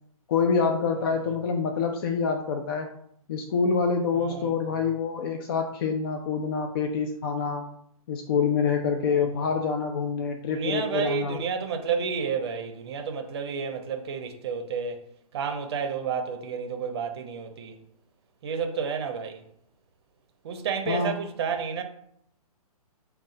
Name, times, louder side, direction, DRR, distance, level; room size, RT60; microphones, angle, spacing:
voice 1, 0.3-2.9 3.3-7.7 8.1-11.4 20.9-21.1, left 5 dB, 40° left, 0.4 m, -26 dB
voice 2, 4.1-4.9 9.0-9.5 10.5-15.0 15.3-17.8 18.4-19.4 20.4-21.8, right 6 dB, 45° right, 0.6 m, -31 dB
5.0 x 2.3 x 3.8 m
hypercardioid pair, 145°, 19 cm